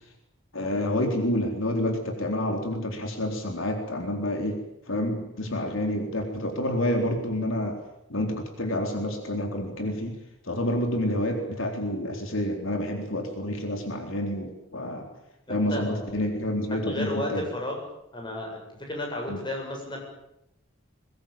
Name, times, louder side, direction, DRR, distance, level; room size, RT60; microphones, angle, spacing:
voice 1, 0.5-4.6 4.9-7.8 8.1-10.2 10.4-15.1 15.5-17.5 19.3-19.4, left 1 dB, 75° left, 3 dB, 4.1 m, -28 dB
voice 2, 15.5-16.3 16.9-17.8 18.1-20.0, left 1 dB, 20° left, 0 dB, 7.7 m, -33 dB
22.5 x 21.5 x 8.9 m, 0.81 s
head